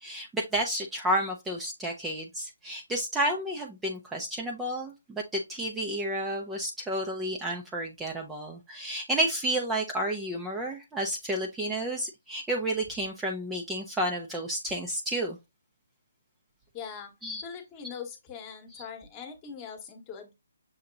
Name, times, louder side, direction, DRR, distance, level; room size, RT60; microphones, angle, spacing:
voice 1, 0.0-15.4 17.2-17.4 18.7-18.8, right 1 dB, 5° right, 0.6 m, -31 dB
voice 2, 16.7-17.1 17.4-20.3, left 7 dB, 25° left, 1.1 m, -41 dB
6.6 x 2.8 x 2.5 m
hypercardioid pair, 155°, 0 cm